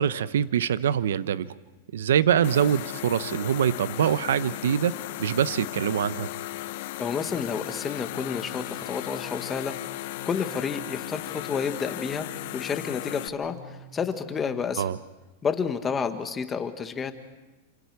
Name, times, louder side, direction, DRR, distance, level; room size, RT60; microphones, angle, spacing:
voice 1, 0.0-1.5 1.9-4.9 5.2-6.3 14.8-15.0, right 9 dB, 85° right, 15 dB, 0.7 m, -24 dB
sound 1, 2.4-13.3, left 17 dB, 55° left, 0.7 m, -36 dB
voice 2, 7.0-14.9 15.4-17.1, left 6 dB, 15° left, 8 dB, 1.5 m, -30 dB
sound 2, 7.3-14.8, left 1 dB, 35° left, 4.0 m, -48 dB
29.0 x 27.0 x 4.8 m, 1.1 s
supercardioid pair, 150°, 0 cm